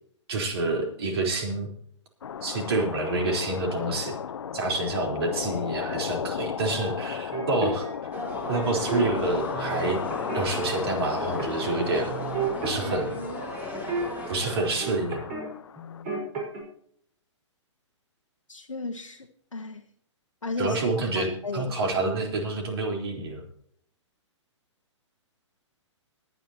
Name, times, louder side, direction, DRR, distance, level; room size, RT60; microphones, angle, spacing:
voice 1, 0.3-1.7 2.4-4.2 4.5-7.9 8.5-10.0 10.3-12.1 12.6-13.2 14.3-15.2 20.6-23.4, right 2 dB, 55° right, 4.2 m, -28 dB
sound 1, 2.2-16.0, left 8 dB, 65° left, 0.6 m, -35 dB
sound 2, 7.3-9.0 9.5-10.7 11.4-11.8 12.0-15.5 15.8-16.6, right 4 dB, 35° right, 5.3 m, -33 dB
sound 3, 8.1-14.7, equal, 10° right, 3.3 m, -36 dB
voice 2, 18.5-19.8 20.4-21.7, left 3 dB, 90° left, 1.0 m, -35 dB
20.5 x 10.0 x 3.0 m
figure-of-eight pair, 120°, 16 cm